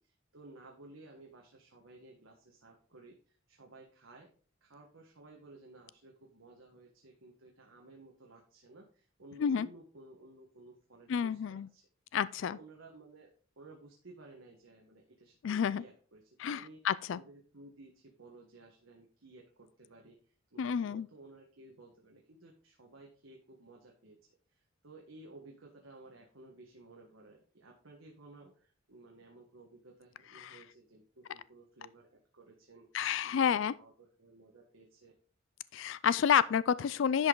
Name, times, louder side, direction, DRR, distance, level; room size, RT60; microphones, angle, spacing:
voice 1, 0.0-4.3 4.6-11.9 12.4-13.3 13.6-16.8 17.1-20.2 20.5-24.2 24.5-35.1, right 2 dB, 80° right, 1.5 m, -56 dB
voice 2, 11.1-11.7 12.1-12.6 15.4-15.8 16.4-17.2 20.6-21.1 30.4-30.6 32.9-33.7 35.7-37.3, left 8 dB, 65° left, 0.3 m, -30 dB
10.5 x 5.4 x 3.8 m
head